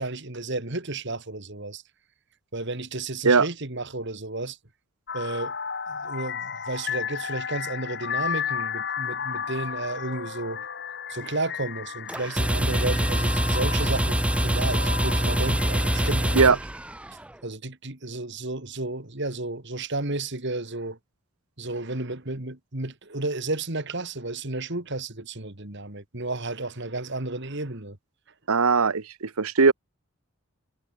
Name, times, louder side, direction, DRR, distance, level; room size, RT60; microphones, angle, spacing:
voice 1, 0.0-1.8 2.5-4.6 5.1-5.5 5.9-10.8 11.1-16.6 17.4-21.0 21.6-28.0, right 2 dB, 55° right, 2.5 m, -32 dB
sound 1, 5.1-16.4, left 7 dB, 50° left, 2.3 m, -34 dB
sound 2, 12.1-17.3, right 1 dB, 5° right, 0.6 m, -25 dB
voice 2, 28.5-29.7, right 4 dB, 80° right, 1.0 m, -19 dB
head